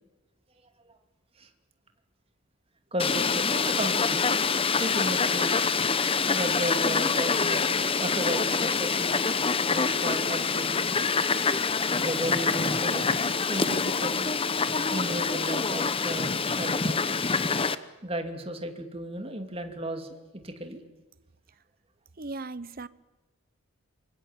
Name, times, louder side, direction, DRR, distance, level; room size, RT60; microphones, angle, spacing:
voice 1, 2.9-4.4 4.8-5.6 6.3-9.2 9.7-11.0 12.0-14.3 14.9-17.3 18.0-20.8, right 1 dB, 25° right, 5 dB, 2.8 m, -34 dB
Fowl, 3.0-17.8, left 5 dB, 25° left, 0.9 m, -26 dB
voice 2, 22.2-22.9, right 3 dB, 40° right, 17 dB, 0.9 m, -37 dB
26.5 x 24.0 x 9.1 m, 1.1 s
head